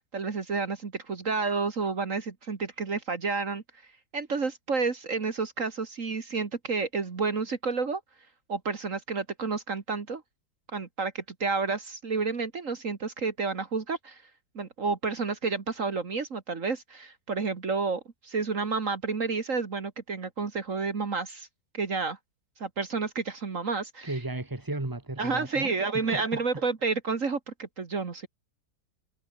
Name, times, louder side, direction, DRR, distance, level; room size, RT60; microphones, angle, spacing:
voice 1, 0.0-3.6 4.1-8.0 8.5-10.2 10.7-14.2 14.6-21.5 21.7-22.2 22.6-24.1 25.2-28.3, right 4 dB, 55° right, 2.2 m, -30 dB
voice 2, 24.0-26.4, right 2 dB, 15° right, 2.4 m, -35 dB
omnidirectional pair, 1.6 m